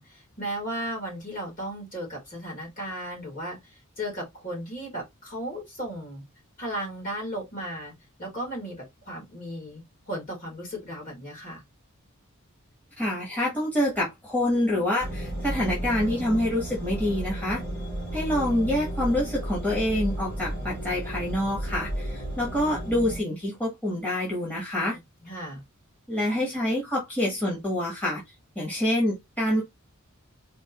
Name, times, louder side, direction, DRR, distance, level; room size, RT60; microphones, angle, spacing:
voice 1, 0.0-6.2 6.6-7.9 8.2-11.6 25.2-25.6, right 1 dB, 40° left, 2.9 m, -35 dB
voice 2, 13.0-17.6 18.1-25.0 26.1-28.2 28.5-29.6, left 1 dB, 5° left, 1.4 m, -26 dB
sound 1, 15.0-23.2, right 1 dB, 65° left, 2.7 m, -33 dB
4.3 x 2.8 x 2.9 m
head